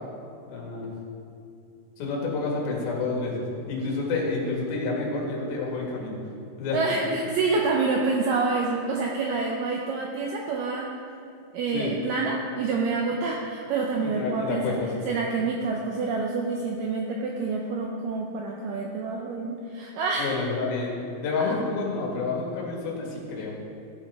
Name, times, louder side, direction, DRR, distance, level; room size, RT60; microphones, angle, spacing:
voice 1, 0.5-0.9 2.0-6.2 6.6-6.8 11.7-11.9 14.1-14.9 20.2-20.9 21.2-23.5, left 3 dB, 70° left, -2 dB, 3.5 m, -29 dB
voice 2, 6.7-10.9 11.5-14.8 15.1-20.3 21.5-21.6, right 4 dB, 80° right, 0 dB, 2.0 m, -27 dB
14.0 x 8.6 x 3.6 m, 2.5 s
omnidirectional pair, 4.6 m